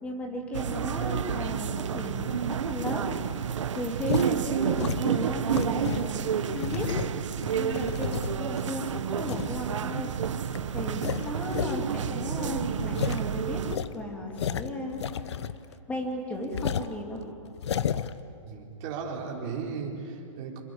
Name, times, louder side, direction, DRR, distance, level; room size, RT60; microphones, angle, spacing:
voice 1, 0.0-3.1 3.7-6.9 7.5-10.1 10.7-13.6 13.9-15.4 15.9-17.2, left 1 dB, 10° left, 1 dB, 2.8 m, -35 dB
sound 1, 0.5-13.8, right 8 dB, 70° right, 1.3 m, -30 dB
sound 2, 4.1-4.3 4.8-6.1 6.5-8.6 9.2-9.5 10.0-10.1 10.5-10.6 10.9-11.8 12.0-12.1 12.4-12.5 12.9-13.2 13.7-15.7 16.0-16.1 16.5-16.9 17.5-18.1, left 9 dB, 55° left, 0.9 m, -32 dB
voice 2, 18.4-20.6, right 5 dB, 25° right, -1 dB, 3.9 m, -36 dB
27.0 x 26.5 x 8.0 m, 2.6 s
hypercardioid pair, 170°, 17 cm